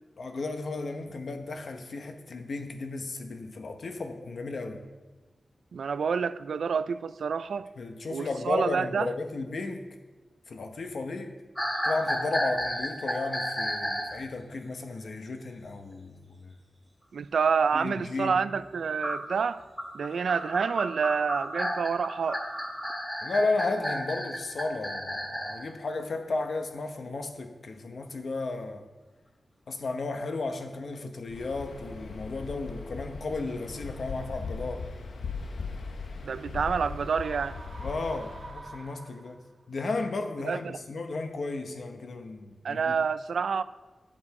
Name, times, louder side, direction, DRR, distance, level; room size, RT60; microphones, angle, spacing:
voice 1, 0.2-4.8 7.8-9.9 10.5-11.4 11.8-16.5 17.7-18.4 23.2-28.8 29.7-34.8 37.8-39.4 39.7-42.9, left 3 dB, 60° left, 0.9 m, -34 dB
voice 2, 5.7-7.7 8.1-9.1 17.1-19.6 19.9-22.4 36.2-37.6 40.4-40.8 42.6-43.6, right 6 dB, 85° right, 0.3 m, -28 dB
sound 1, 11.6-14.2 19.0-25.6, equal, 5° left, 2.0 m, -32 dB
Waves surf, 31.3-38.6, left 4 dB, 90° left, 0.9 m, -39 dB
sound 2, 37.0-39.6, right 3 dB, 50° right, 1.5 m, -47 dB
9.7 x 7.4 x 4.8 m
wide cardioid pair, 150°, 0 cm